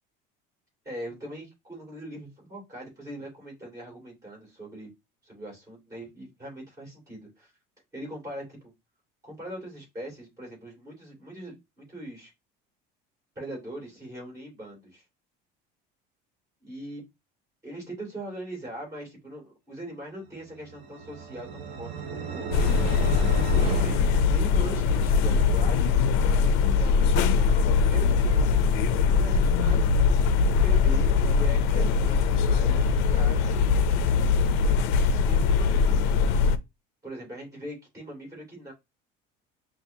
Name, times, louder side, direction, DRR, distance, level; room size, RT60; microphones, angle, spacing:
voice 1, 0.8-4.9 5.2-7.5 7.9-8.7 9.2-12.3 13.3-15.0 16.6-17.0 17.6-22.7 23.5-27.5 27.8-28.5 29.1-30.0 30.6-33.7 35.1-36.1 37.0-38.7, right 1 dB, 15° right, -2 dB, 2.6 m, -41 dB
sound 1, 20.5-25.1, right 6 dB, 35° right, 0.5 m, -35 dB
sound 2, 22.5-36.6, left 5 dB, 75° left, 0.5 m, -22 dB
5.8 x 2.5 x 2.7 m, 0.21 s
cardioid pair, 180°, 19 cm